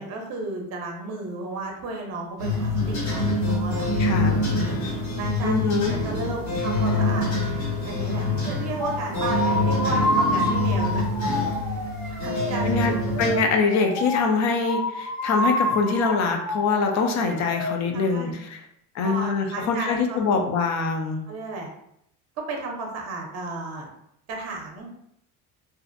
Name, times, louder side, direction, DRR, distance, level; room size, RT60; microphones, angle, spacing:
voice 1, 0.0-4.8 5.2-5.6 5.9-7.3 7.8-11.4 12.0-12.9 17.9-18.3 19.0-20.3 21.3-21.7 22.4-23.9 24.3-24.9, right 3 dB, 45° right, 1 dB, 0.6 m, -33 dB
sound 1, 2.4-13.4, left 1 dB, 80° left, 1.4 m, -25 dB
voice 2, 4.0-4.3 5.4-6.0 12.6-18.6 18.9-21.2, left 4 dB, 50° left, 4 dB, 0.5 m, -24 dB
sound 2, 8.8-17.7, left 1 dB, ahead, 0.6 m, -28 dB
2.5 x 2.1 x 2.5 m, 0.75 s
cardioid pair, 130°, 37 cm